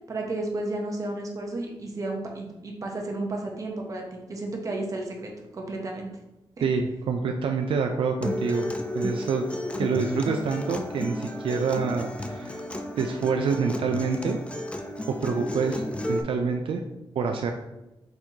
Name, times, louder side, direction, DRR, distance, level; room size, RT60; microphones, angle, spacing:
voice 1, 0.1-6.1 6.6-6.7, right 2 dB, 40° right, 1 dB, 0.8 m, -32 dB
voice 2, 6.6-9.5 9.8-12.6 13.0-14.4 15.1-15.8 16.1-16.8 17.2-17.5, right 5 dB, 75° right, 3 dB, 0.4 m, -27 dB
Acoustic guitar, 8.2-16.2, left 1 dB, 15° left, 0.3 m, -33 dB
4.4 x 4.2 x 2.8 m, 0.98 s
wide cardioid pair, 180°, 9 cm